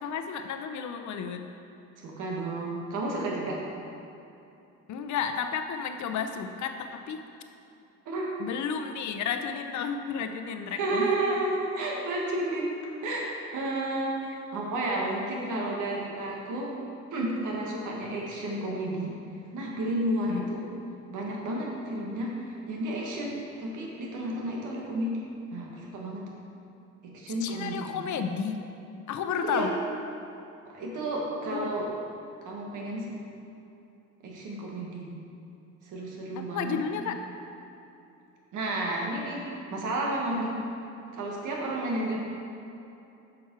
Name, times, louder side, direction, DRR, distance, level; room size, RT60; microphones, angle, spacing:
voice 1, 0.0-1.5 4.9-7.3 8.4-11.1 20.3-20.5 27.4-28.6 29.1-29.7 31.5-31.7 36.4-37.2, left 7 dB, 70° left, 7 dB, 0.7 m, -32 dB
voice 2, 2.0-3.6 8.0-8.3 10.7-13.3 13.5-16.8 17.1-19.2 19.5-20.7 21.1-26.3 27.0-27.9 29.4-29.7 30.6-31.9 32.4-33.2 34.2-35.1 35.8-36.8 38.5-40.6 41.1-42.2, right 1 dB, 80° right, -2 dB, 1.6 m, -32 dB
7.3 x 6.1 x 4.6 m, 2.8 s
cardioid pair, 90°, 30 cm